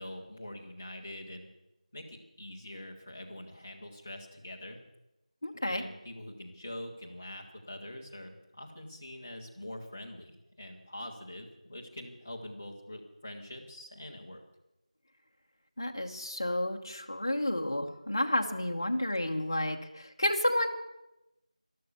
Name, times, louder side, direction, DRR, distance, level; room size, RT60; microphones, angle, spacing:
voice 1, 0.0-1.5 1.9-4.8 5.7-14.4, left 1 dB, 10° left, -3 dB, 0.6 m, -44 dB
voice 2, 5.4-5.8 15.8-20.7, left 1 dB, 30° left, 3 dB, 1.1 m, -31 dB
12.5 x 12.0 x 8.1 m, 0.94 s
figure-of-eight pair, 180°, 4 cm